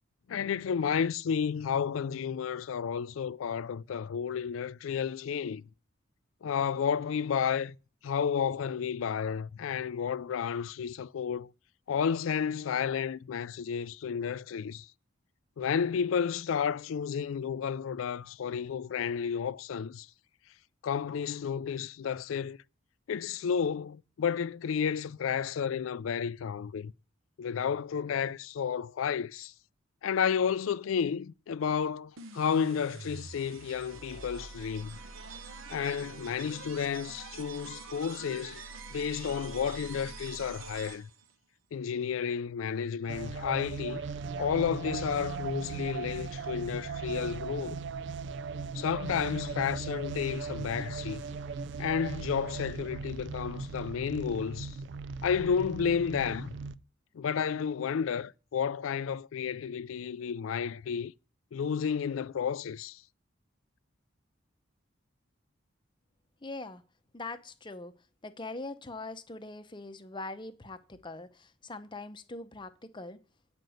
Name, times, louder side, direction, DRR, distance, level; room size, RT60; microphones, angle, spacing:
voice 1, 0.3-5.7 6.4-7.8 8.0-11.5 11.9-14.9 15.6-20.1 20.8-22.6 23.1-26.9 27.4-29.5 30.0-35.0 35.7-38.6 38.9-41.1 41.7-44.0 44.4-47.8 48.7-51.2 51.8-54.8 55.2-56.6 57.1-61.1 61.5-63.0, left 7 dB, 85° left, 0.4 m, -31 dB
sound 1, 32.2-41.3, right 4 dB, 85° right, 1.0 m, -45 dB
sound 2, 43.1-56.8, right 4 dB, 60° right, 0.4 m, -38 dB
voice 2, 66.4-66.8 67.1-67.9 68.2-73.2, left 2 dB, 25° left, 0.7 m, -42 dB
9.3 x 5.2 x 7.8 m
head